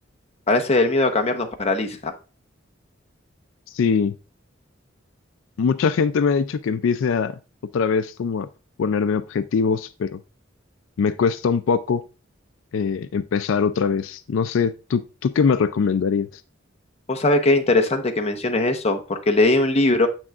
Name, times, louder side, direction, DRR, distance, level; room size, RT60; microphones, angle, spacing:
voice 1, 0.5-2.1 17.1-20.1, left 2 dB, 35° left, 4 dB, 0.9 m, -20 dB
voice 2, 3.7-4.1 5.6-7.3 7.7-8.5 8.8-10.2 11.0-12.0 12.7-16.3, left 5 dB, 85° left, 13 dB, 0.4 m, -22 dB
7.5 x 6.1 x 2.4 m, 0.33 s
head